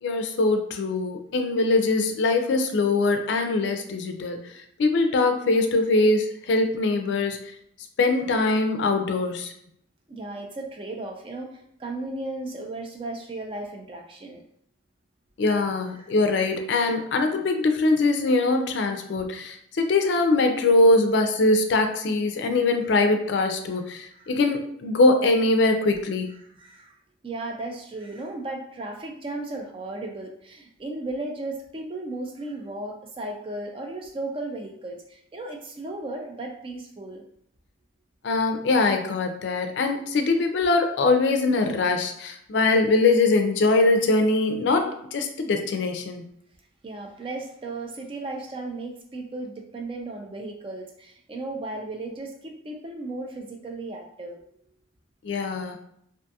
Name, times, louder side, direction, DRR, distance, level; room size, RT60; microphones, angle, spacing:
voice 1, 0.0-7.4 8.0-9.5 15.4-26.3 38.2-46.2 55.2-55.8, left 3 dB, 65° left, 5 dB, 0.4 m, -22 dB
voice 2, 10.1-14.4 16.0-16.1 24.1-24.3 26.6-26.9 27.2-37.2 46.8-54.4, right 2 dB, 30° right, 2 dB, 0.3 m, -35 dB
2.5 x 2.3 x 2.7 m, 0.71 s
head